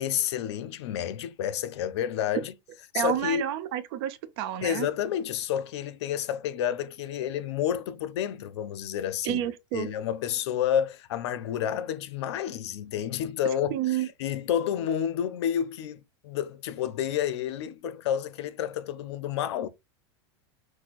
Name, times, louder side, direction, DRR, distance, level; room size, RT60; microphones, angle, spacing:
voice 1, 0.0-2.5 2.9-3.4 4.6-9.4 9.7-19.7, left 9 dB, 75° left, 0.5 m, -30 dB
voice 2, 2.9-4.9 9.2-9.9 13.7-14.1, right 12 dB, 60° right, 0.6 m, -30 dB
6.1 x 2.1 x 2.4 m
supercardioid pair, 140°, 14 cm